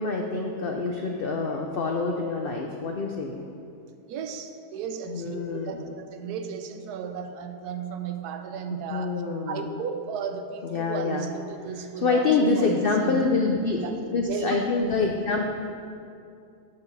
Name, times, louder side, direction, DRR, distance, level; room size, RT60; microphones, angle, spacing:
voice 1, 0.0-3.4 5.1-5.8 8.9-9.7 10.6-11.3 12.0-13.8 14.1-15.5, left 4 dB, 80° left, 1 dB, 0.5 m, -26 dB
voice 2, 4.1-9.2 9.5-13.3 13.8-14.0 14.2-14.6, right 6 dB, 85° right, 7 dB, 1.2 m, -35 dB
6.9 x 6.4 x 5.4 m, 2.5 s
omnidirectional pair, 1.7 m